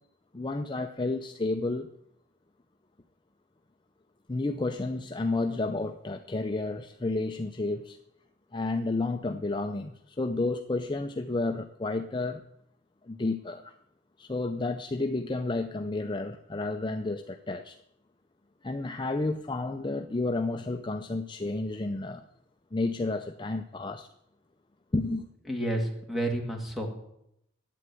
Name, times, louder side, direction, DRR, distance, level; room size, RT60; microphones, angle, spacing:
voice 1, 0.3-1.9 4.3-8.0 8.5-12.4 13.0-13.7 14.2-17.8 18.6-22.3 22.7-24.1 24.9-25.3, left 2 dB, 25° left, 0.5 m, -31 dB
voice 2, 25.5-26.9, right 1 dB, ahead, 2.2 m, -30 dB
11.5 x 8.9 x 9.2 m
head